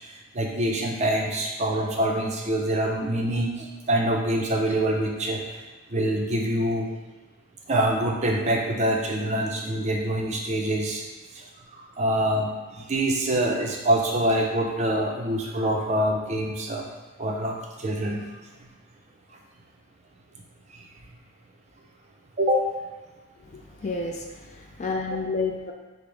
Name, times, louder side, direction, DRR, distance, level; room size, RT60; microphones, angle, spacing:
voice 1, 0.1-5.6 5.9-6.9 7.7-11.0 11.3-11.4 11.7-16.9 17.2-18.2 22.4-22.6, right 1 dB, 30° right, 0 dB, 0.4 m, -25 dB
voice 2, 23.5-25.7, left 3 dB, 35° left, 1 dB, 0.4 m, -30 dB
5.2 x 2.0 x 4.5 m, 1.3 s
head